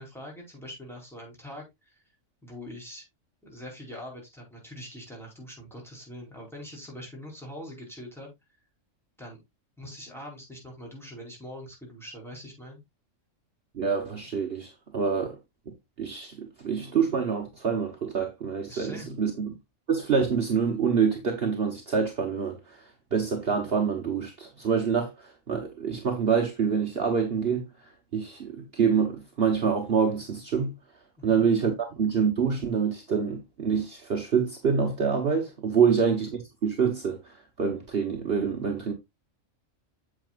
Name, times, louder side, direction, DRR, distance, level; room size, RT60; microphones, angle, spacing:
voice 1, 0.0-2.0 2.4-3.0 3.4-8.3 9.2-9.4 9.8-12.8 18.6-19.1 31.2-31.4 35.9-36.0, equal, ahead, 4.8 m, -43 dB
voice 2, 13.7-15.4 16.0-19.5 19.9-22.8 23.1-27.6 28.1-30.7 31.2-38.9, right 6 dB, 50° right, 1.4 m, -26 dB
8.7 x 7.6 x 2.4 m
omnidirectional pair, 1.3 m